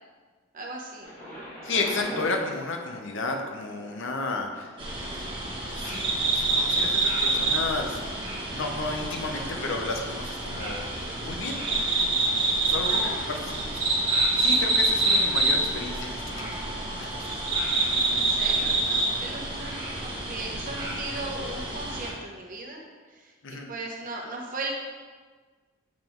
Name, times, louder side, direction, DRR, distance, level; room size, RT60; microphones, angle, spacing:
voice 1, 0.5-1.1 1.9-2.0 9.4-9.6 12.8-13.3 18.1-22.8 23.1-24.7, right 2 dB, 40° right, 0 dB, 1.0 m, -37 dB
Thunder, 1.0-12.9 13.6-13.7, equal, 40° left, 1.8 m, -45 dB
voice 2, 1.6-4.7 5.7-8.0 8.5-11.6 12.6-12.9 13.4-13.8 14.1-16.6 17.0-17.4 23.4-23.7, left 3 dB, 65° left, 3 dB, 0.8 m, -32 dB
sound 1, 4.8-22.1, right 2 dB, 25° right, 1.5 m, -27 dB
7.4 x 3.8 x 4.6 m, 1.4 s
head